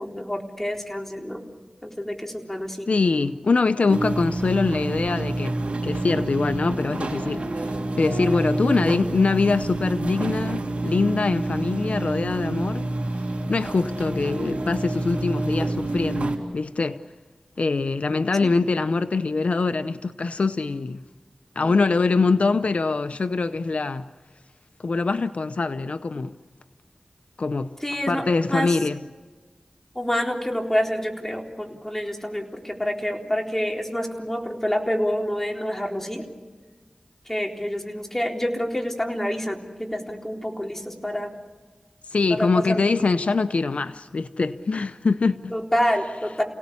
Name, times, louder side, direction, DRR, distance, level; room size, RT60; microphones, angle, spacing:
voice 1, 0.0-1.4 1.8-2.9 18.4-18.5 21.6-21.7 27.8-28.8 30.0-36.2 37.3-41.3 42.3-42.8 45.5-46.4, equal, 15° left, 4.0 m, -27 dB
voice 2, 2.9-5.6 5.8-12.9 13.5-17.0 17.6-21.0 21.6-24.1 24.8-26.3 27.4-27.7 28.1-29.0 42.1-45.5, left 4 dB, 75° left, 0.7 m, -23 dB
sound 1, 3.9-16.4, right 2 dB, 75° right, 3.4 m, -28 dB
29.5 x 18.0 x 8.5 m
cardioid pair, 45°, 2 cm